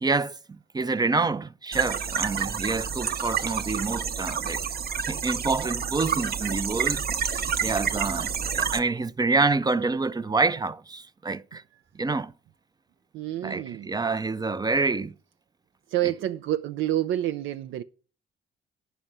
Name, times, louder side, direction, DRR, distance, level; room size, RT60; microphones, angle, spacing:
voice 1, 0.0-4.6 5.1-11.6 12.0-12.3 13.4-15.1, right 3 dB, 20° right, 0.4 m, -27 dB
sound 1, 1.7-8.8, right 7 dB, 50° right, 0.9 m, -29 dB
voice 2, 13.1-13.9 15.9-17.8, right 13 dB, 80° right, 0.5 m, -28 dB
9.1 x 5.5 x 7.2 m
cardioid pair, 90°, 20 cm